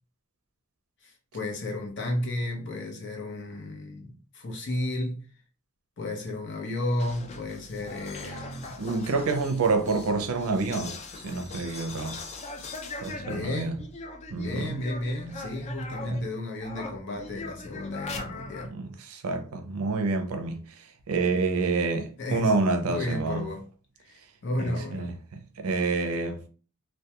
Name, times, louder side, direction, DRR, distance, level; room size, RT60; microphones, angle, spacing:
voice 1, 1.0-5.3 6.0-8.8 13.2-13.9 14.3-18.7 22.2-22.6 22.9-23.6 24.0-25.1, left 1 dB, 55° left, 0.7 m, -33 dB
sound 1, 6.9-16.3 16.6-18.7, left 3 dB, 30° left, 0.3 m, -41 dB
voice 2, 8.8-11.0 11.2-12.2 13.0-13.8 14.3-14.8 16.1-16.2 18.7-20.6 21.1-23.5 24.7-26.5, right 3 dB, 70° right, 0.5 m, -28 dB
2.2 x 2.2 x 2.8 m
head